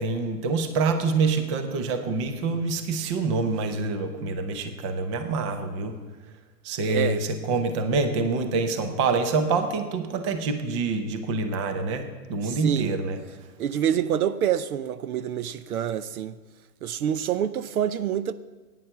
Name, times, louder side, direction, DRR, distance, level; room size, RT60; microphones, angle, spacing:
voice 1, 0.0-6.0 6.6-13.2, right 4 dB, 20° right, 0.6 m, -26 dB
voice 2, 6.9-7.2 12.4-13.0 13.6-16.4 16.8-18.3, right 9 dB, 60° right, 0.7 m, -27 dB
10.5 x 9.1 x 6.8 m
hypercardioid pair, 145°, 50 cm